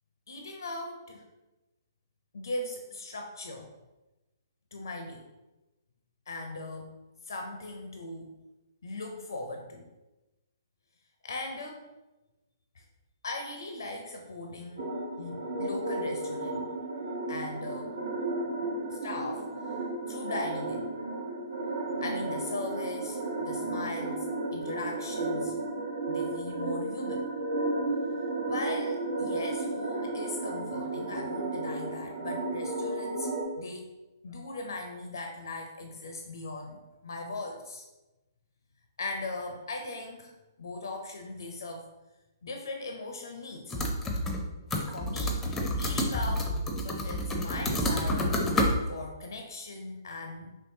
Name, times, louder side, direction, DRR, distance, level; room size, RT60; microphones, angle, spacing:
voice 1, 0.3-1.2 2.3-3.7 4.7-5.3 6.3-7.0 7.3-8.4 8.8-9.9 11.2-11.8 12.7-12.8 13.2-14.9 15.2-16.7 17.3-18.0 18.9-19.5 20.1-20.9 22.0-25.6 26.1-27.3 28.5-33.3 33.6-33.9 34.2-37.9 39.0-40.3 40.6-41.9 42.4-43.8 44.8-46.6 46.8-48.4 48.9-50.6, left 2 dB, 70° left, 3 dB, 0.5 m, -39 dB
sound 1, 14.8-33.4, right 2 dB, 70° right, 1.1 m, -33 dB
sound 2, 43.7-44.4 44.7-48.7, left 1 dB, 10° left, 0.6 m, -29 dB
4.5 x 3.1 x 2.7 m, 1.1 s
figure-of-eight pair, 130°, 2 cm